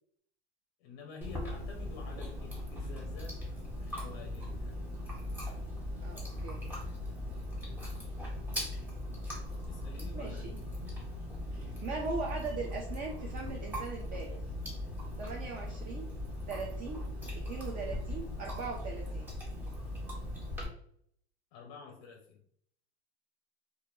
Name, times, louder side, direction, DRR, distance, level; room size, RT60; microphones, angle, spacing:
voice 1, 0.8-3.4 3.8-4.8 9.6-10.8 21.5-22.4, left 5 dB, 50° left, 2 dB, 0.5 m, -50 dB
Chewing mastication, 1.2-20.7, left 1 dB, 5° right, 0.7 m, -39 dB
voice 2, 6.0-6.7 10.1-10.6 11.5-14.4 15.2-16.1 16.5-17.0 17.5-19.3, right 4 dB, 25° right, 0 dB, 0.3 m, -40 dB
2.2 x 2.1 x 2.9 m, 0.66 s
hypercardioid pair, 115°, 32 cm